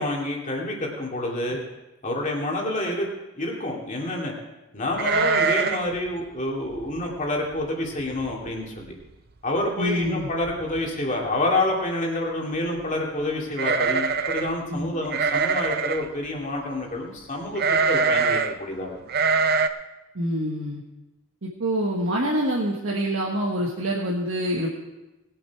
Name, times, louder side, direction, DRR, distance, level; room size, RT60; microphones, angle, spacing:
voice 1, 0.0-1.6 2.0-3.1 3.4-4.3 4.7-8.9 9.4-19.0, left 1 dB, 35° left, -1 dB, 2.4 m, -28 dB
sound 1, 5.0-5.9 6.2-6.3 6.8-7.0 7.6-7.7 8.0-8.5 8.8-8.9 10.0-10.1 10.4-10.9 13.5-14.5 15.1-16.1 17.6-18.5 19.1-19.7, right 5 dB, 45° right, 0.5 m, -23 dB
voice 2, 9.8-10.3 14.7-14.9 20.1-20.8 21.4-24.8, equal, 60° right, -3 dB, 1.4 m, -26 dB
19.5 x 7.8 x 4.7 m, 1.0 s
head